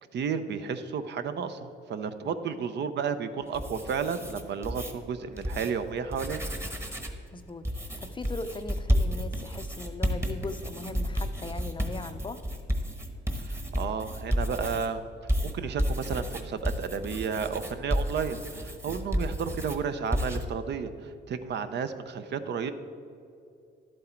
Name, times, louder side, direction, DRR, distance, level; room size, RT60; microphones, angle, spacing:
voice 1, 0.1-6.5 13.4-15.0 15.4-22.7, right 6 dB, 60° right, 10 dB, 0.6 m, -32 dB
voice 2, 2.2-2.6 7.3-12.4 19.1-19.4, left 2 dB, 25° left, 10 dB, 0.5 m, -39 dB
sound 1, 3.4-4.9 5.4-5.7 6.0-7.2 7.6-14.9 15.3-19.8 20.1-20.4, equal, 15° right, 1.1 m, -31 dB
11.5 x 7.7 x 4.4 m, 2.6 s
cardioid pair, 90°, 20 cm